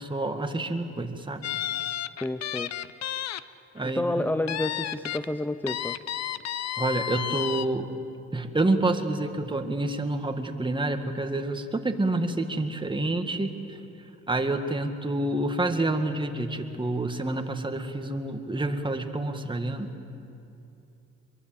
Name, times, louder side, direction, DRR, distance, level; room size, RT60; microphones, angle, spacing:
voice 1, 0.0-1.5 3.7-4.1 6.8-7.9 8.3-13.8 14.3-19.9, right 2 dB, 15° right, 6 dB, 1.9 m, -28 dB
sound 1, 1.4-3.4 3.8-3.9 4.5-5.2 5.7-7.7, left 11 dB, 60° left, 0.7 m, -32 dB
voice 2, 2.2-2.7 3.8-6.0, left 1 dB, 5° left, 11 dB, 0.6 m, -29 dB
23.5 x 23.0 x 7.7 m, 2.7 s
cardioid pair, 90°, 30 cm